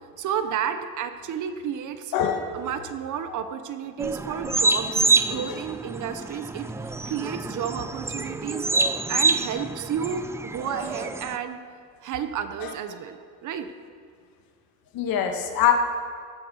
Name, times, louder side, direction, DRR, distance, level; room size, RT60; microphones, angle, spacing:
voice 1, 0.2-2.1 2.5-8.7 9.1-11.6 12.0-13.7, right 8 dB, 45° right, 9 dB, 1.1 m, -32 dB
voice 2, 2.1-2.6 5.3-5.6 12.6-12.7 14.9-15.7, left 9 dB, 55° left, 4 dB, 2.1 m, -24 dB
sound 1, 4.0-11.4, right 3 dB, 5° right, 0.4 m, -27 dB
15.5 x 13.5 x 6.5 m, 2.1 s
cardioid pair, 130°, 41 cm